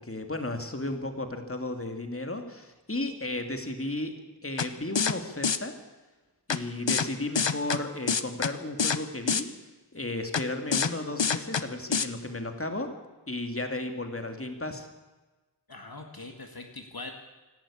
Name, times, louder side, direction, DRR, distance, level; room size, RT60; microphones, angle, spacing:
voice 1, 0.0-4.1 4.4-5.8 6.5-9.5 9.9-12.9 13.3-14.9, left 2 dB, 30° left, 5 dB, 2.6 m, -34 dB
sound 1, 4.6-4.7 5.0-5.1 5.4-5.6 6.5-6.6 6.9-7.1 7.4-7.8 8.1-8.5 8.8-9.0 9.3-9.4 10.3-10.4 10.7-10.9 11.2-11.6 11.9-12.1, left 6 dB, 85° left, 1.0 m, -25 dB
voice 2, 15.7-17.1, left 2 dB, 55° left, 3 dB, 2.2 m, -42 dB
26.0 x 12.5 x 8.7 m, 1.2 s
wide cardioid pair, 50°, 43 cm